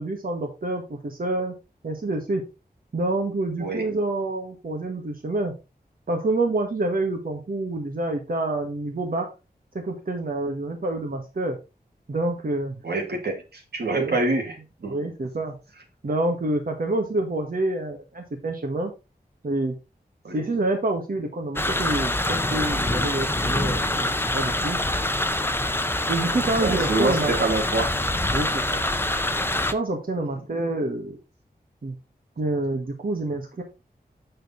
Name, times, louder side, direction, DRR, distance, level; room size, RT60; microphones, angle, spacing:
voice 1, 0.0-1.5 1.8-2.4 2.9-5.5 6.1-9.3 9.7-11.6 12.1-12.8 13.9-14.2 14.9-15.5 16.0-18.9 19.4-19.7 20.3-24.8 26.1-27.3 28.3-28.8 29.7-31.2 31.8-32.0 32.4-33.6, right 2 dB, 60° right, 1.7 m, -27 dB
voice 2, 12.8-14.6 14.8-15.0 20.2-20.5 26.6-27.9 30.2-30.3, right 2 dB, 90° right, 2.5 m, -26 dB
sound 1, 21.6-29.7, left 1 dB, 15° left, 0.8 m, -25 dB
6.9 x 6.5 x 4.0 m
wide cardioid pair, 65°, 17 cm